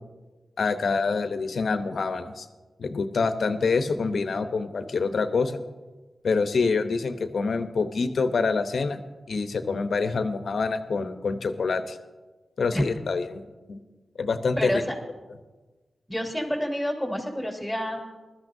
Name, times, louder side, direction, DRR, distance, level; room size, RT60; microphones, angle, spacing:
voice 1, 0.6-2.5 2.8-5.6 6.2-9.0 9.3-12.0 12.6-13.4 13.7-13.8 14.2-14.8, left 4 dB, 75° left, 9 dB, 0.8 m, -26 dB
voice 2, 14.6-15.0 16.1-18.0, equal, 10° right, 0 dB, 3.6 m, -28 dB
20.0 x 13.0 x 2.7 m, 1.3 s
cardioid pair, 45°, 0 cm